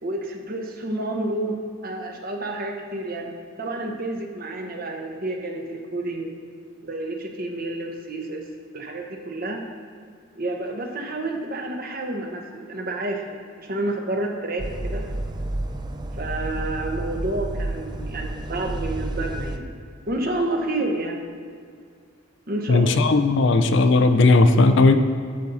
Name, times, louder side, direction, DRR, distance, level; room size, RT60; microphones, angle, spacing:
voice 1, 0.0-1.6 1.8-3.3 3.6-6.3 6.8-8.4 8.7-9.7 10.3-13.2 13.6-15.0 16.1-19.7 20.1-21.2 22.5-23.2, right 2 dB, 45° right, 2 dB, 1.2 m, -29 dB
sound 1, 14.6-19.6, right 1 dB, 20° right, 0.5 m, -30 dB
voice 2, 22.7-25.0, left 3 dB, 60° left, 9 dB, 0.5 m, -16 dB
11.5 x 7.1 x 4.1 m, 2.2 s
head